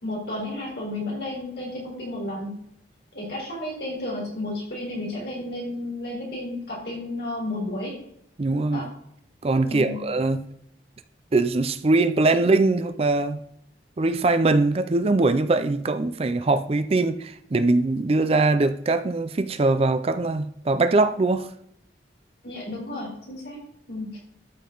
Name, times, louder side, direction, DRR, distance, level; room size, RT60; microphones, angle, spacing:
voice 1, 0.0-2.6 3.1-8.0 8.7-8.9 9.7-10.0 22.4-24.2, left 1 dB, 60° left, 3.9 m, -32 dB
voice 2, 8.4-8.9 9.4-10.4 11.3-13.4 14.0-21.5, right 3 dB, 35° right, 0.4 m, -22 dB
12.5 x 5.5 x 3.9 m
head